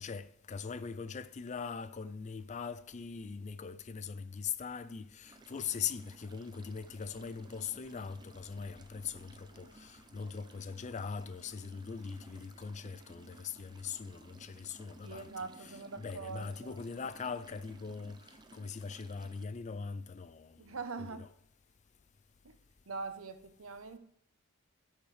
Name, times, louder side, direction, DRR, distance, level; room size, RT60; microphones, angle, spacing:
voice 1, 0.0-15.3 15.6-21.3, left 6 dB, 35° left, 0.4 m, -41 dB
sound 1, 5.2-19.5, right 2 dB, 20° right, 0.5 m, -58 dB
voice 2, 15.0-16.7 20.6-21.2 22.4-22.5 22.9-24.0, right 4 dB, 80° right, 0.9 m, -43 dB
17.0 x 6.4 x 3.3 m
head